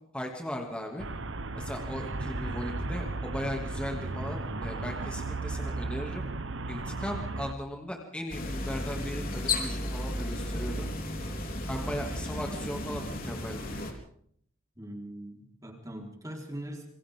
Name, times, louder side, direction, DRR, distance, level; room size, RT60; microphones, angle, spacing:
voice 1, 0.1-1.1 1.6-6.2 6.7-10.9 11.5-13.8, equal, 5° left, 1 dB, 2.5 m, -37 dB
Traffic noise roadway noise, 1.0-7.5, right 2 dB, 60° right, 1.3 m, -35 dB
sound 1, 8.3-13.9, left 2 dB, 40° left, 3.9 m, -34 dB
voice 2, 11.7-12.0 14.8-16.9, right 1 dB, 15° right, 1 dB, 4.4 m, -41 dB
27.5 x 25.0 x 3.8 m, 0.64 s
head